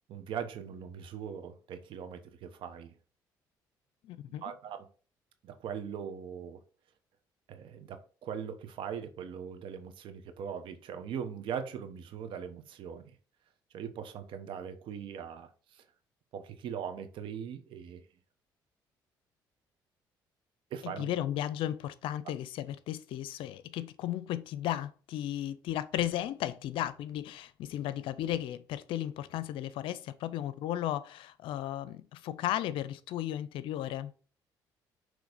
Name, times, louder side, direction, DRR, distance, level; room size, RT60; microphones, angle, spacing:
voice 1, 0.1-2.9 4.4-4.9 5.4-6.6 7.5-13.1 13.7-15.8 16.3-18.0 20.7-21.1, right 8 dB, 70° right, 1.0 m, -40 dB
voice 2, 4.0-4.4 20.8-34.1, left 12 dB, 75° left, 0.5 m, -35 dB
6.3 x 3.2 x 5.1 m
supercardioid pair, 70°, 9 cm